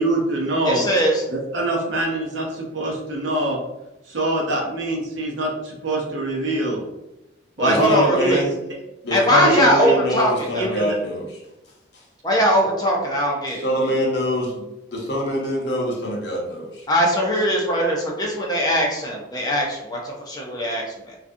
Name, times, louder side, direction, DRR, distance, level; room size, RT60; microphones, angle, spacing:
voice 1, 0.0-0.8 1.3-3.6 4.1-6.8 7.6-8.4 9.4-9.6 10.6-10.9, right 2 dB, 70° right, -2 dB, 0.7 m, -24 dB
voice 2, 0.6-1.2 7.6-8.4 9.1-10.8 12.2-13.6 16.9-21.2, equal, 20° left, -1 dB, 0.4 m, -21 dB
voice 3, 7.7-8.5 9.0-11.4 13.6-14.5 14.9-16.8, equal, 55° left, -2 dB, 0.7 m, -24 dB
2.4 x 2.2 x 2.5 m, 0.92 s
head